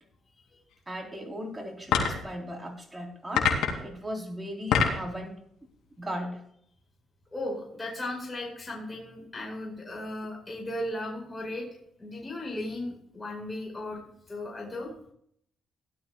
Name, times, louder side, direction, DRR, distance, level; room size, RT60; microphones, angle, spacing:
voice 1, 0.9-5.4 6.0-6.4, equal, 15° right, 1 dB, 4.0 m, -37 dB
sound 1, 1.8-2.3 3.3-3.9 4.5-5.1, left 6 dB, 90° left, 2.8 m, -25 dB
voice 2, 7.3-11.7 12.0-14.0 14.3-14.9, left 1 dB, 20° left, -1 dB, 4.8 m, -36 dB
17.0 x 12.0 x 2.4 m, 0.67 s
cardioid pair, 90°, 0 cm